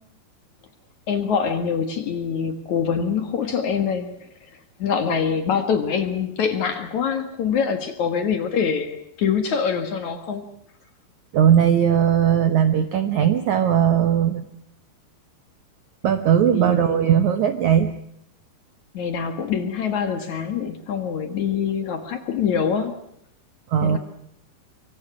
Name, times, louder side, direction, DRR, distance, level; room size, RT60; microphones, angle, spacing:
voice 1, 1.1-4.1 4.8-10.4 16.5-17.1 18.9-23.0 23.8-24.0, left 7 dB, 55° left, 8 dB, 2.5 m, -24 dB
voice 2, 11.3-14.4 16.0-17.9 23.7-24.0, right 9 dB, 70° right, 10 dB, 1.8 m, -18 dB
25.5 x 24.5 x 6.1 m, 0.74 s
omnidirectional pair, 4.8 m